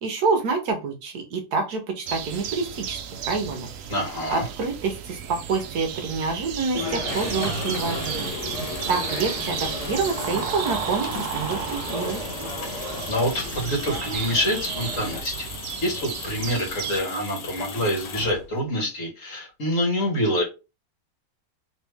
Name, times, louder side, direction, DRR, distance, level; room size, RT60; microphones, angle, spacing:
voice 1, 0.0-3.0 3.2-3.7 4.3-8.3 8.9-12.2, right 4 dB, 65° right, 5 dB, 1.2 m, -27 dB
sound 1, 2.0-17.0, right 8 dB, 85° right, 0.7 m, -34 dB
voice 2, 3.9-4.4 12.6-15.5 15.8-20.4, equal, 45° left, 0 dB, 1.7 m, -26 dB
sound 2, 6.7-15.2, left 2 dB, 30° left, 0.7 m, -35 dB
sound 3, 6.9-18.7, left 3 dB, 70° left, 1.5 m, -37 dB
3.4 x 3.1 x 3.4 m, 0.28 s
omnidirectional pair, 2.0 m